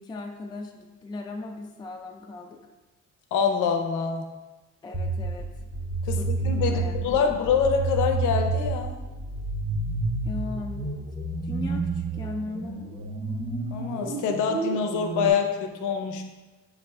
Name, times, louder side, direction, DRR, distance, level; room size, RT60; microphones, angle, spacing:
voice 1, 0.0-2.6 4.8-5.5 6.2-7.3 10.2-10.9 11.4-12.8, left 3 dB, 15° left, 2 dB, 0.3 m, -38 dB
voice 2, 3.3-4.3 6.0-6.2 6.4-9.0 13.7-16.2, left 6 dB, 90° left, 5 dB, 0.5 m, -25 dB
sound 1, 4.9-15.3, right 3 dB, 30° right, 0.6 m, -30 dB
5.2 x 2.5 x 3.3 m, 1.2 s
cardioid pair, 90°, 30 cm